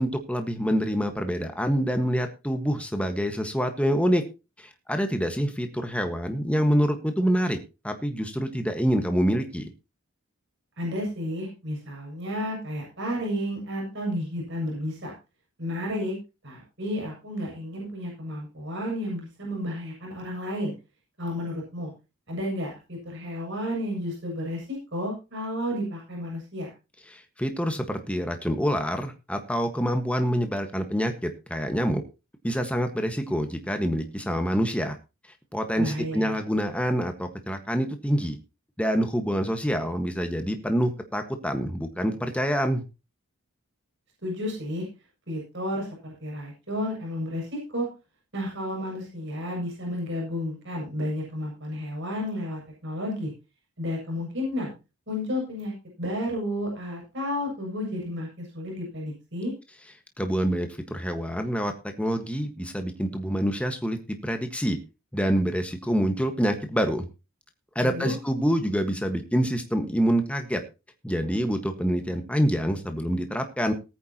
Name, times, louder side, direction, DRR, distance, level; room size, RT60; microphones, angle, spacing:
voice 1, 0.0-4.2 4.6-7.6 7.8-9.7 27.1-32.0 32.4-35.0 35.5-38.4 38.8-42.8 60.2-61.7 62.0-64.0 64.2-64.8 65.1-67.1 67.7-70.6 71.0-73.7, equal, 5° left, 6 dB, 1.5 m, -26 dB
voice 2, 10.8-15.1 15.6-16.2 16.4-20.7 21.2-21.9 22.3-26.7 35.8-36.4 44.2-44.9 45.3-47.9 48.3-53.3 53.8-54.7 55.1-59.5 67.8-68.1, left 1 dB, 55° right, -1 dB, 7.2 m, -32 dB
19.0 x 9.6 x 2.9 m, 0.29 s
head